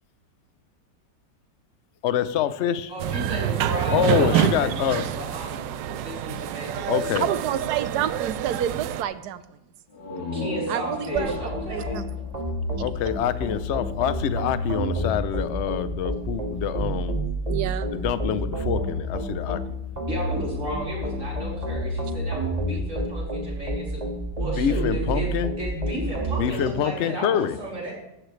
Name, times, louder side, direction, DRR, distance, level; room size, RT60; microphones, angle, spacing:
voice 1, 2.0-2.9 3.9-5.1 6.9-7.3 12.8-17.2 17.9-19.6 24.6-25.5 26.4-27.6, left 9 dB, 55° left, 13 dB, 0.8 m, -26 dB
voice 2, 2.9-7.2 10.3-12.0 20.1-24.0 24.4-27.9, equal, 45° right, -4 dB, 5.2 m, -34 dB
sound 1, 3.0-9.0, right 11 dB, 90° right, 1.3 m, -27 dB
voice 3, 7.2-9.4 10.7-11.3 11.7-12.0 17.5-17.9, right 10 dB, 70° right, 13 dB, 1.3 m, -28 dB
sound 2, 9.9-13.5, left 2 dB, 70° left, 2.4 m, -35 dB
sound 3, 11.2-26.4, right 1 dB, 25° right, 1.9 m, -29 dB
15.5 x 11.5 x 3.2 m, 0.93 s
omnidirectional pair, 1.9 m